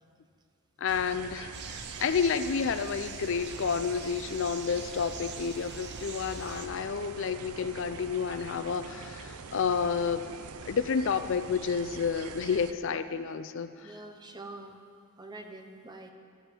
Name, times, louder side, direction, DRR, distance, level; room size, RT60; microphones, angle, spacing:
voice 1, 0.8-10.3 10.7-13.9, left 6 dB, 55° left, 11 dB, 0.4 m, -30 dB
sound 1, 0.9-12.7, right 5 dB, 85° right, 0.6 m, -44 dB
sound 2, 1.5-6.7, right 5 dB, 50° right, 0.8 m, -44 dB
voice 2, 13.7-14.8 15.2-16.1, right 2 dB, 20° right, 5 dB, 0.7 m, -45 dB
12.0 x 5.6 x 8.6 m, 2.2 s
head